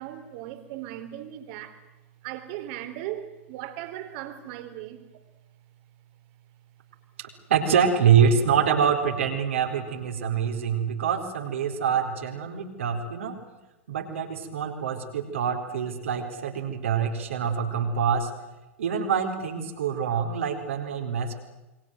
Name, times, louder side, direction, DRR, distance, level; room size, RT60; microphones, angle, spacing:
voice 1, 0.0-1.8 2.2-5.1, right 12 dB, 50° right, 3.5 m, -37 dB
voice 2, 7.2-13.4 13.9-18.3 18.8-21.4, right 7 dB, 65° right, 4.3 m, -25 dB
28.0 x 23.5 x 7.8 m
figure-of-eight pair, 90°, 7 cm